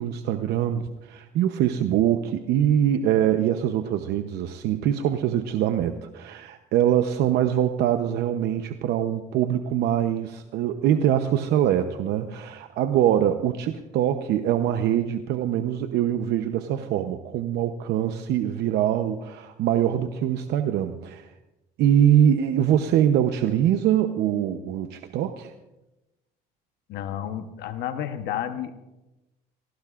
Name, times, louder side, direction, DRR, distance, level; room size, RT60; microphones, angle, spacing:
voice 1, 0.0-21.3 21.8-25.5, right 10 dB, 80° right, 7 dB, 0.8 m, -23 dB
voice 2, 26.9-28.7, left 10 dB, 80° left, 9 dB, 1.1 m, -31 dB
28.5 x 18.0 x 2.5 m, 1.0 s
cardioid pair, 110°, 17 cm